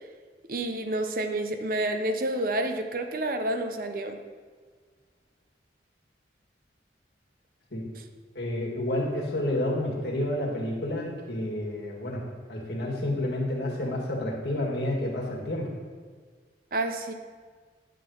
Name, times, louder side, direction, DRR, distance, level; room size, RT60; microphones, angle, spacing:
voice 1, 0.5-4.2 16.7-17.1, right 1 dB, 50° right, 6 dB, 0.7 m, -29 dB
voice 2, 8.4-12.2 12.5-15.7, left 1 dB, 65° left, -3 dB, 1.9 m, -30 dB
10.0 x 3.9 x 7.1 m, 1.5 s
head